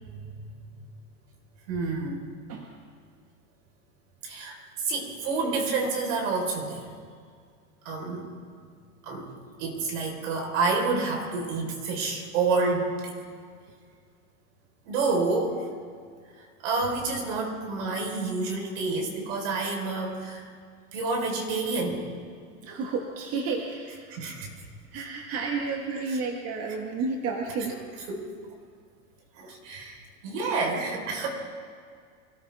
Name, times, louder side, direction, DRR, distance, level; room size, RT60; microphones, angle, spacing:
voice 1, 0.2-0.8 1.7-2.3 4.2-6.9 7.8-8.3 9.0-9.2 9.6-13.1 14.8-15.7 16.6-20.4 20.9-22.0 24.1-24.7 24.9-25.0 25.9-26.2 28.1-28.3 29.4-31.3, right 3 dB, 65° right, 1 dB, 4.5 m, -29 dB
voice 2, 22.6-24.2 24.9-27.7, right 4 dB, 35° right, 1 dB, 1.6 m, -31 dB
24.5 x 13.5 x 3.6 m, 2.1 s
hypercardioid pair, 120°, 40 cm